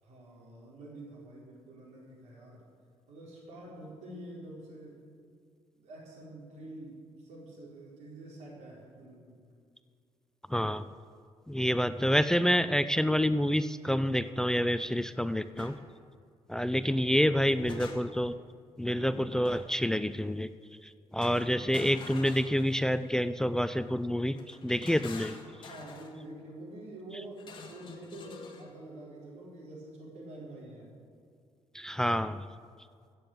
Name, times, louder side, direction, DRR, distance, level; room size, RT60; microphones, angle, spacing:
voice 1, 0.0-2.6 3.1-5.0 5.8-9.3 17.2-17.8 25.4-30.9, right 1 dB, 90° right, -3 dB, 4.2 m, -47 dB
voice 2, 10.5-10.9 11.5-15.8 16.5-18.3 18.8-20.5 21.1-25.4 31.7-32.4, equal, 5° left, 13 dB, 0.4 m, -28 dB
sound 1, 15.6-15.8 17.2-18.3 19.5-19.9 21.2-23.0 24.4-26.2 27.4-28.7, left 4 dB, 45° left, 1.8 m, -47 dB
15.5 x 7.0 x 7.8 m, 2.2 s
cardioid pair, 110°, 11 cm